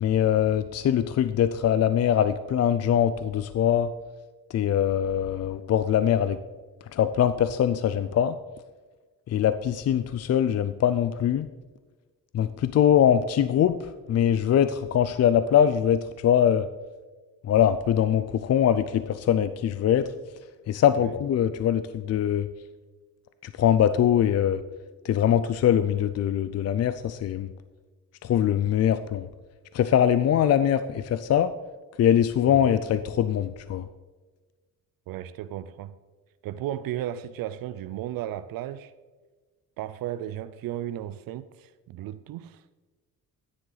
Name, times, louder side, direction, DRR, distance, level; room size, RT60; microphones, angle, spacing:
voice 1, 0.0-3.9 4.5-6.4 6.9-8.4 9.3-11.5 12.3-13.7 14.1-16.7 17.5-20.1 20.7-22.5 23.6-24.6 25.0-27.5 28.2-29.3 29.7-31.5 32.0-33.9, left 9 dB, 50° left, 0.5 m, -22 dB
voice 2, 35.1-35.9 36.4-38.9 39.8-42.6, right 12 dB, 85° right, 0.5 m, -34 dB
13.5 x 9.9 x 4.0 m
cardioid pair, 110°, 33 cm